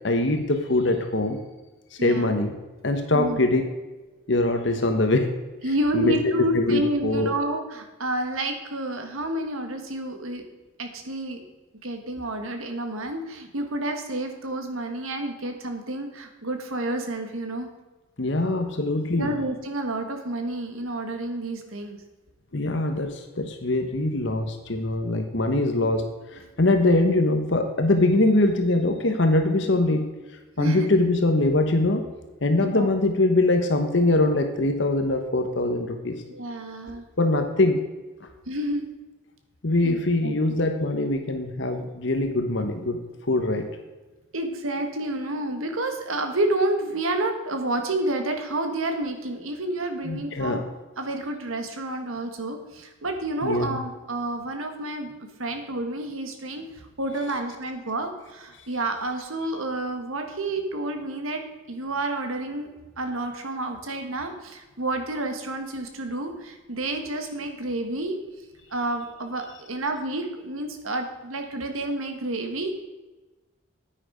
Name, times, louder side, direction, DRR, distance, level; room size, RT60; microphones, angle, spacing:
voice 1, 0.0-1.4 2.0-2.5 2.8-3.6 4.3-5.3 5.9-6.1 6.5-7.4 18.2-19.3 22.5-26.0 26.3-30.0 30.6-32.0 32.4-36.2 37.2-37.8 39.6-43.0 43.2-43.7 50.0-50.6 53.4-53.8, left 2 dB, 60° left, 6 dB, 1.1 m, -22 dB
voice 2, 2.0-2.3 3.1-3.4 5.6-10.4 10.8-11.4 11.8-17.7 19.2-22.0 30.6-30.9 32.6-32.9 36.3-37.0 38.5-38.9 39.8-40.6 44.3-50.6 51.0-55.1 55.4-56.7 57.0-61.4 61.7-62.7 63.0-68.2 68.7-72.8, right 1 dB, 90° right, 6 dB, 1.6 m, -29 dB
9.9 x 8.9 x 5.0 m, 1.2 s
head